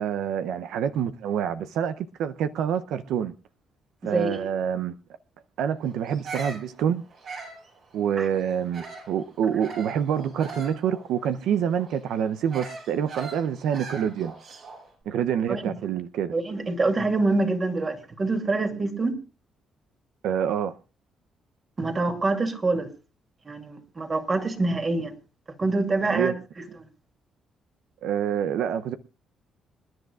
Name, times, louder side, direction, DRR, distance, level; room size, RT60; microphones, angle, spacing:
voice 1, 0.0-3.3 4.0-4.9 5.6-7.0 7.9-14.3 15.1-16.3 20.2-20.8 26.1-26.3 28.0-29.0, right 8 dB, 85° right, 0.6 m, -27 dB
voice 2, 4.0-4.5 8.2-8.3 15.5-15.7 16.3-19.2 21.8-22.9 23.5-25.1 25.6-26.3, right 3 dB, 35° right, 2.6 m, -25 dB
Bird vocalization bird call bird song, 6.1-9.2 9.6-14.9, right 4 dB, 65° right, 7.6 m, -41 dB
27.0 x 10.5 x 2.4 m
cardioid pair, 90°, 0 cm